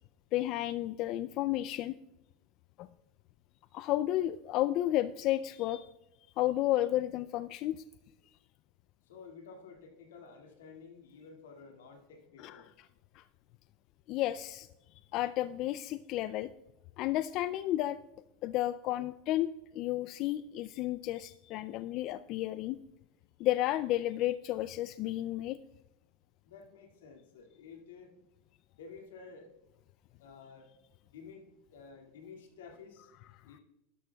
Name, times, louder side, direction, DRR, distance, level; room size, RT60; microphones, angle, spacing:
voice 1, 0.3-2.0 2.8-2.9 3.7-5.9 6.4-7.8 12.4-12.9 13.1-13.2 14.1-14.7 15.1-16.5 17.0-18.0 18.4-22.8 23.4-25.6, left 14 dB, 50° left, 13 dB, 0.3 m, -32 dB
voice 2, 9.1-12.7 26.5-28.1 28.8-29.5 30.2-30.7 31.1-31.4 31.7-33.1 33.4-33.6, left 5 dB, 90° left, 2 dB, 2.2 m, -51 dB
12.5 x 11.5 x 2.3 m, 0.92 s
supercardioid pair, 120°, 0 cm